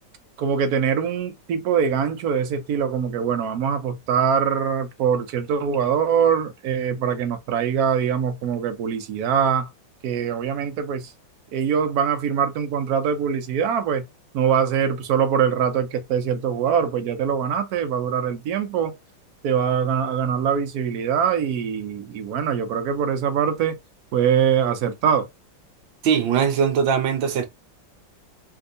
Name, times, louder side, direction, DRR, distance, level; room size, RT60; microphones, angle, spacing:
voice 1, 0.4-9.7 10.0-11.1 11.5-14.0 14.3-18.9 19.4-23.8 24.1-25.3, right 7 dB, 60° right, 1.1 m, -23 dB
voice 2, 26.0-27.5, right 7 dB, 85° right, 1.5 m, -20 dB
3.5 x 2.8 x 2.5 m
omnidirectional pair, 2.0 m